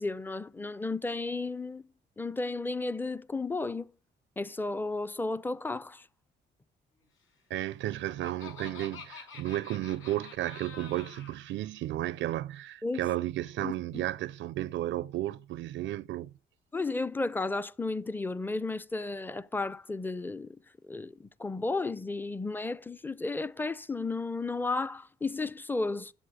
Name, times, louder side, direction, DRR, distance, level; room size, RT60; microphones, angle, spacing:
voice 1, 0.0-1.8 2.2-3.9 4.4-6.0 12.8-13.0 13.6-13.7 16.7-20.5 20.8-26.1, left 3 dB, 10° left, 0.5 m, -33 dB
voice 2, 7.5-16.3, right 14 dB, 75° right, 0.4 m, -33 dB
Laughter, 7.6-11.4, left 6 dB, 80° left, 5.7 m, -48 dB
8.1 x 7.7 x 8.1 m
cardioid pair, 90°, 20 cm